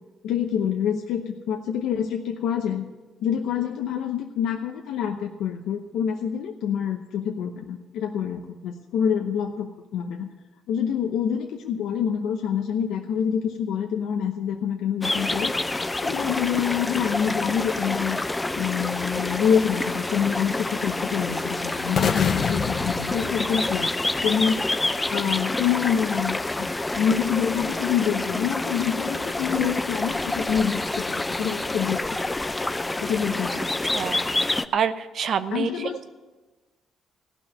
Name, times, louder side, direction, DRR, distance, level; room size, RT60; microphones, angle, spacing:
voice 1, 0.2-2.8 3.2-10.3 10.7-15.5 16.0-18.2 18.6-23.9 24.2-24.6 25.1-26.7 26.9-32.2 33.0-33.6 35.5-36.0, left 8 dB, 85° left, 3 dB, 0.8 m, -26 dB
sound 1, 15.0-34.7, left 2 dB, 15° left, 0.5 m, -28 dB
sound 2, 22.0-24.1, left 6 dB, 60° left, 0.7 m, -27 dB
voice 2, 34.7-35.7, right 7 dB, 60° right, 12 dB, 0.7 m, -26 dB
16.0 x 6.0 x 9.3 m, 1.2 s
cardioid pair, 90°, 0 cm